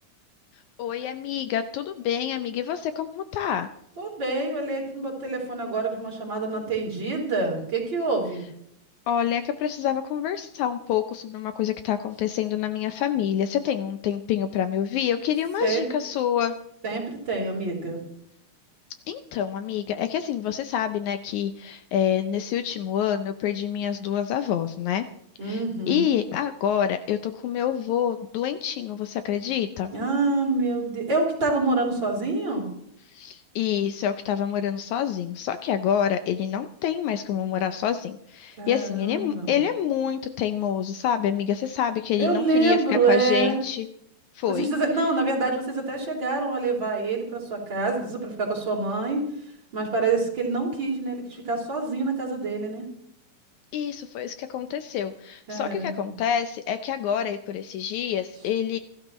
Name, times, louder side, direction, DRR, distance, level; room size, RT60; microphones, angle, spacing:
voice 1, 0.8-3.7 9.1-16.6 19.1-25.1 25.4-29.9 33.1-43.9 44.3-44.7 53.7-58.8, left 9 dB, 75° left, 10 dB, 1.9 m, -27 dB
voice 2, 4.0-8.4 15.6-15.9 16.8-18.0 25.4-26.1 29.9-32.6 38.6-39.5 42.2-43.6 44.5-49.3 49.7-52.9 55.5-56.0, right 3 dB, 35° right, -2 dB, 4.4 m, -26 dB
28.5 x 12.5 x 3.1 m, 0.74 s
omnidirectional pair, 3.7 m